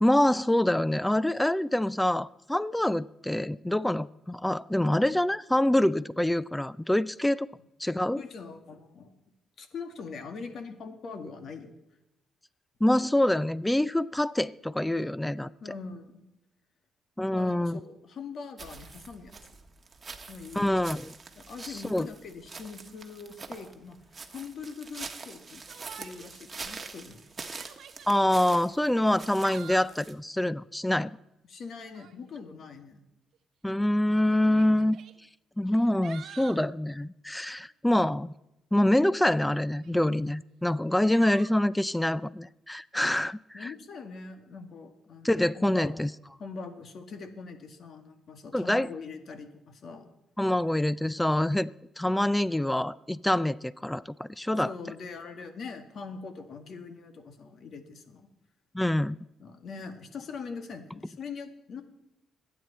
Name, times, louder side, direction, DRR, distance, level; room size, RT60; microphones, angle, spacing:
voice 1, 0.0-7.5 7.8-8.2 12.8-15.5 17.2-17.8 20.6-21.1 21.9-22.1 28.1-31.1 33.6-35.0 35.6-38.3 38.7-43.7 45.2-46.1 48.5-48.9 50.4-51.7 52.0-54.7 58.7-59.2, left 1 dB, 5° left, 0.4 m, -25 dB
voice 2, 8.1-9.1 9.6-11.7 15.6-16.2 17.3-19.4 20.3-20.7 21.3-24.0 24.3-25.6 26.0-27.2 31.5-33.0 43.5-46.0 46.4-50.1 54.5-58.3 59.4-61.8, left 5 dB, 55° left, 2.0 m, -42 dB
sound 1, 18.6-30.1, right 4 dB, 30° right, 1.5 m, -45 dB
Yell, 25.7-26.4 26.8-26.9 27.4-28.3 29.2-30.0 31.8-32.2 33.3-33.4 34.3-35.1 35.7-36.6 39.3-40.0 41.1-41.6, right 9 dB, 70° right, 1.0 m, -48 dB
25.5 x 9.5 x 4.3 m
cardioid pair, 90°, 0 cm